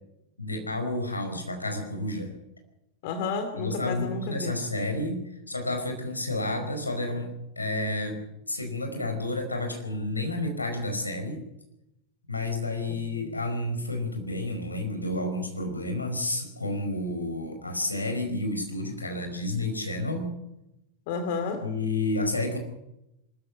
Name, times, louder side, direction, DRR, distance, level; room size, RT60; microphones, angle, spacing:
voice 1, 0.4-2.3 3.6-7.3 7.5-8.2 8.5-11.4 12.3-20.3 21.6-22.6, left 2 dB, 80° left, 5 dB, 4.9 m, -30 dB
voice 2, 3.0-4.6 12.9-13.3 21.1-21.6, left 5 dB, 50° left, 8 dB, 2.5 m, -32 dB
23.5 x 14.0 x 9.7 m, 0.89 s
figure-of-eight pair, 90°, 0 cm